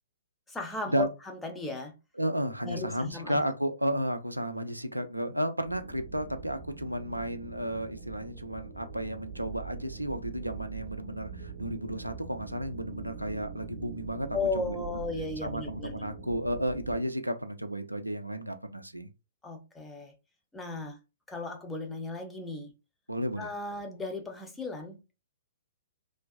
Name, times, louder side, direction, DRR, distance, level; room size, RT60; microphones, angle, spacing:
voice 1, 0.5-1.9 2.6-3.4 14.3-16.1 19.4-20.1 20.5-21.0 21.3-22.7 23.4-25.0, left 3 dB, 10° left, 0.5 m, -35 dB
voice 2, 2.2-14.8 15.4-19.1 23.1-23.5, equal, 85° right, 0.3 m, -33 dB
sound 1, 5.6-17.0, right 5 dB, 35° right, 0.7 m, -43 dB
2.5 x 2.2 x 2.4 m
figure-of-eight pair, 115°, 0 cm